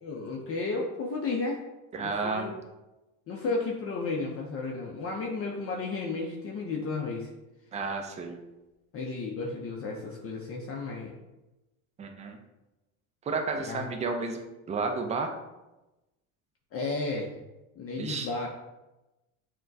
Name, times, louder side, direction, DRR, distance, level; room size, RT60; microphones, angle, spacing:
voice 1, 0.0-1.6 2.0-2.5 3.3-7.3 8.9-11.2 13.6-13.9 16.7-17.4 17.8-18.5, left 3 dB, 35° left, -1 dB, 0.5 m, -33 dB
voice 2, 1.9-2.6 7.7-8.4 12.0-12.4 13.2-15.3 18.0-18.3, right 4 dB, 15° right, 4 dB, 0.4 m, -32 dB
6.0 x 2.2 x 2.6 m, 1.0 s
supercardioid pair, 100°, 43 cm